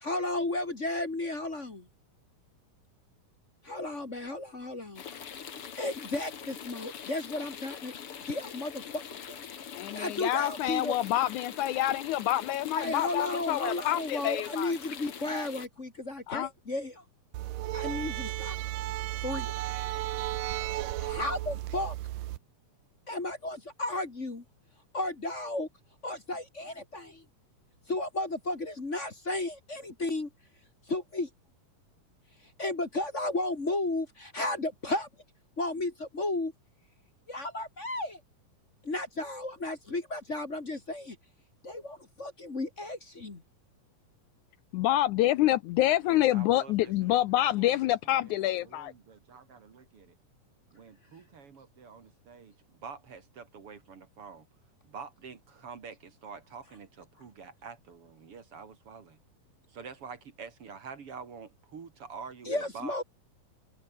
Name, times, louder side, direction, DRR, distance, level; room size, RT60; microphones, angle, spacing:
voice 1, 0.0-1.9 3.6-5.4 5.8-8.0 8.3-9.0 9.3-9.4 9.9-10.9 12.7-17.0 17.7-18.6 19.2-19.5 19.8-20.0 21.0-22.0 23.1-24.4 24.9-25.7 26.0-27.2 27.9-30.3 30.9-31.3 32.6-35.1 35.6-36.5 37.3-38.2 38.8-41.2 41.6-43.4 62.5-63.0, left 2 dB, 25° left, 2.0 m, -34 dB
sound 1, 5.0-15.7, left 8 dB, 45° left, 2.5 m, -43 dB
voice 2, 9.8-14.7 16.3-16.5 44.7-48.9, left 14 dB, 75° left, 1.9 m, -27 dB
sound 2, 17.3-22.4, right 15 dB, 80° right, 2.6 m, -34 dB
voice 3, 46.0-50.1 50.7-54.5 54.8-59.2 59.7-63.0, right 5 dB, 45° right, 2.7 m, -47 dB
omnidirectional pair, 3.8 m